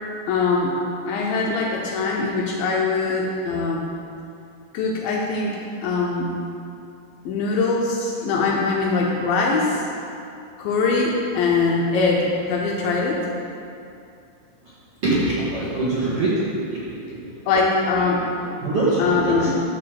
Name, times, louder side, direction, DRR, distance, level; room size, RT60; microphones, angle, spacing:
voice 1, 0.3-0.7 1.0-3.9 4.7-6.4 7.3-9.8 10.6-13.2 17.5-18.5 19.0-19.6, left 4 dB, 85° left, -2 dB, 2.0 m, -22 dB
voice 2, 15.0-16.8 17.1-17.3 18.6-19.5, right 2 dB, 60° right, -10 dB, 1.6 m, -23 dB
11.5 x 4.2 x 7.7 m, 2.6 s
omnidirectional pair, 5.3 m